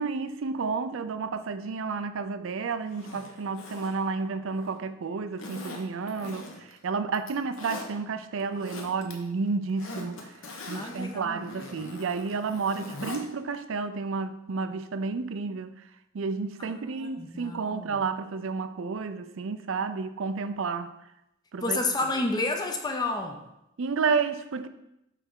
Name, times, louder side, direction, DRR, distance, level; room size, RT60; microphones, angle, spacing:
voice 1, 0.0-10.3 10.7-15.7 16.1-20.9 21.5-21.8 23.8-24.7, right 4 dB, 65° right, 0.4 m, -31 dB
Zipper (clothing), 2.9-4.8 5.4-6.8 7.1-7.9 8.4-9.1 9.4-13.2 13.5-13.6, left 2 dB, 65° left, 1.0 m, -42 dB
voice 2, 10.7-11.4 16.8-18.0 21.6-23.4, left 2 dB, 20° left, 0.5 m, -30 dB
9.1 x 3.4 x 3.7 m
head